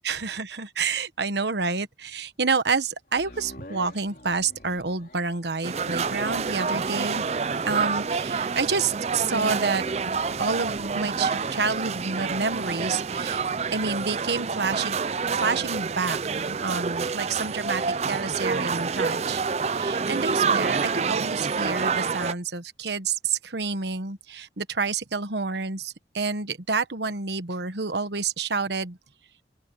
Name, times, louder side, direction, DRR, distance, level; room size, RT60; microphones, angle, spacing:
voice 1, 0.0-7.2 7.7-13.4 13.7-15.0 15.3-29.0, right 4 dB, 75° right, 1.2 m, -29 dB
sound 1, 3.1-17.3 17.8-17.9, left 1 dB, 50° left, 4.0 m, -51 dB
sound 2, 5.6-22.3, right 5 dB, 35° right, 0.4 m, -27 dB
open air
head